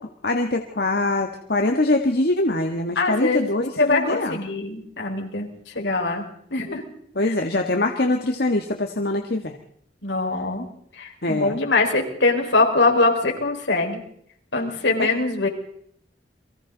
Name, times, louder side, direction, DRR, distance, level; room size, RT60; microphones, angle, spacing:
voice 1, 0.2-4.4 7.1-9.5 11.2-11.6 15.0-15.1, left 2 dB, 60° left, 4 dB, 1.6 m, -23 dB
voice 2, 3.0-3.5 3.8-5.5 5.8-6.2 6.5-6.8 7.3-7.4 10.0-10.6 11.0-14.0 14.5-15.5, left 3 dB, 80° left, 2 dB, 5.0 m, -22 dB
29.5 x 23.5 x 4.0 m, 0.67 s
head